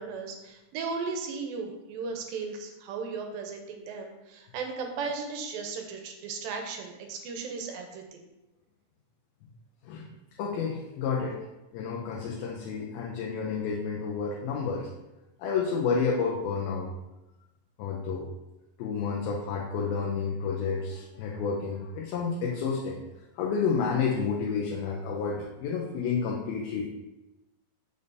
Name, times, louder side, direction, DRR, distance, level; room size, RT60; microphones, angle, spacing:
voice 1, 0.0-8.3, right 4 dB, 85° right, 3 dB, 2.5 m, -36 dB
voice 2, 10.4-11.4 11.7-14.9 15.4-16.9 17.8-18.3 18.8-23.0 23.4-26.9, left 5 dB, 85° left, -2 dB, 2.6 m, -30 dB
6.9 x 6.5 x 2.7 m, 0.98 s
omnidirectional pair, 4.2 m